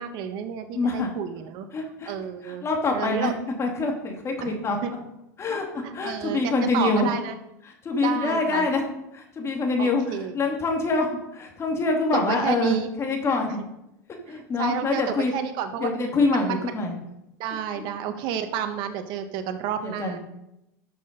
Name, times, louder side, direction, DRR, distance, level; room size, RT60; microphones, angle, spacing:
voice 1, 0.0-1.7 2.1-2.7 2.9-3.4 4.4-4.5 4.8-4.9 5.5-7.3 8.0-8.7 9.8-10.3 12.1-12.9 13.5-13.6 14.3-15.9 16.3-16.6 17.4-20.2, right 8 dB, 55° right, 7 dB, 1.4 m, -31 dB
voice 2, 0.7-1.1 1.7-2.1 2.4-3.3 3.6-4.8 5.4-7.1 7.8-8.8 9.1-13.6 14.3-15.3 15.8-16.9 19.8-20.2, left 3 dB, 30° left, 2 dB, 2.4 m, -25 dB
12.5 x 6.2 x 5.3 m, 0.86 s
hypercardioid pair, 105°, 9 cm